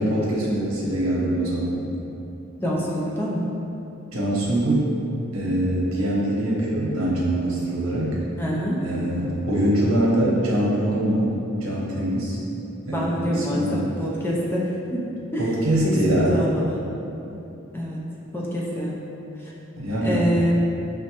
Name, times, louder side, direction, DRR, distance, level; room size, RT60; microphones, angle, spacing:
voice 1, 0.0-1.9 4.1-5.0 5.3-8.2 8.8-11.3 11.6-12.4 12.9-13.9 15.4-16.4 19.8-20.3, right 1 dB, 85° right, -5 dB, 0.8 m, -23 dB
voice 2, 2.6-3.5 8.4-8.8 12.9-15.0 15.3-15.5 15.8-15.9 16.2-16.8 17.7-18.0 18.3-18.9 19.4-19.5 20.0-20.5, equal, 10° left, -5 dB, 0.4 m, -26 dB
5.7 x 2.1 x 2.9 m, 2.9 s
head